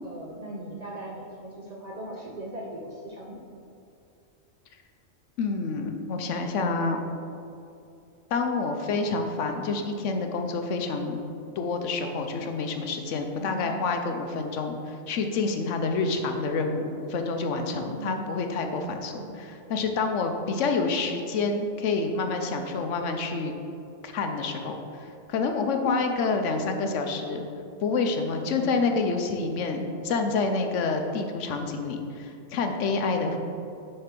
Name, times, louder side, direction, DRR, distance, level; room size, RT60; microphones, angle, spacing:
voice 1, 0.0-3.5 13.4-13.7 18.0-18.3 19.1-19.3 28.4-28.9, right 1 dB, 45° right, -3 dB, 0.5 m, -39 dB
voice 2, 5.4-7.1 8.3-11.3 11.6-23.5 24.0-27.5 27.8-33.4, left 4 dB, 70° left, 5 dB, 0.9 m, -28 dB
6.6 x 3.3 x 5.8 m, 2.5 s
omnidirectional pair, 1.3 m